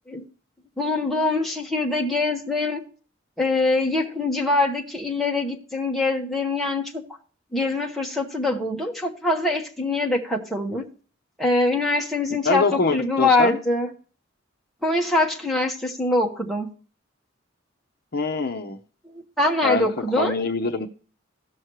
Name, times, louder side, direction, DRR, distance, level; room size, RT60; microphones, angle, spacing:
voice 1, 0.8-2.8 3.4-7.0 7.5-10.9 11.4-12.7 12.9-13.9 14.8-16.7 19.1-20.3, left 2 dB, ahead, -1 dB, 1.3 m, -23 dB
voice 2, 12.4-13.6 18.1-18.8 19.6-19.9 20.2-20.9, left 3 dB, 50° left, 6 dB, 0.7 m, -24 dB
17.0 x 6.2 x 3.1 m, 0.40 s
head